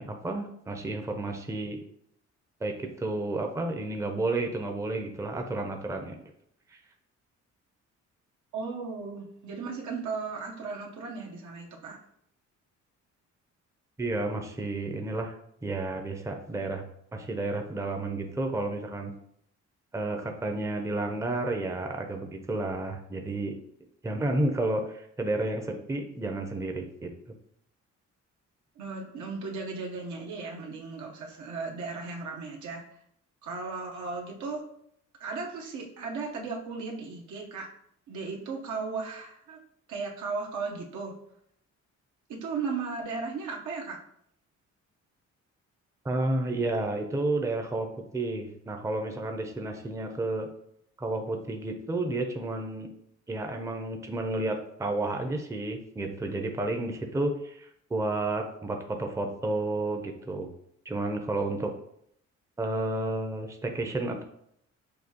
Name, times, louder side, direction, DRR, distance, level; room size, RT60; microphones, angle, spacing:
voice 1, 0.0-1.8 2.6-6.2 6.7-6.8 14.0-15.3 15.6-16.8 17.1-19.1 19.9-23.5 24.0-27.1 46.0-47.9 48.1-50.5 51.0-52.9 53.3-60.5 60.9-61.7 62.6-64.2, right 2 dB, 10° right, 3 dB, 0.6 m, -31 dB
voice 2, 8.5-12.0 28.8-33.0 33.4-34.6 35.2-37.7 38.1-39.6 39.9-41.1 42.3-44.0, right 4 dB, 75° right, 0 dB, 1.0 m, -36 dB
6.5 x 2.3 x 2.9 m, 0.71 s
cardioid pair, 90°, 30 cm